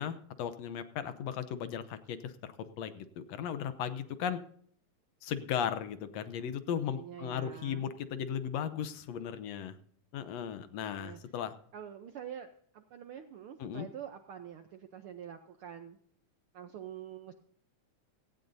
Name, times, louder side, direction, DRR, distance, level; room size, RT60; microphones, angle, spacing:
voice 1, 0.0-4.4 5.2-9.8 10.1-11.5 13.6-13.9, left 8 dB, 70° left, 11 dB, 1.9 m, -36 dB
voice 2, 6.7-7.8 11.0-11.2 11.7-12.5 12.7-16.0 16.5-17.3, right 9 dB, 75° right, 7 dB, 1.3 m, -46 dB
17.0 x 16.0 x 2.7 m, 0.62 s
omnidirectional pair, 3.3 m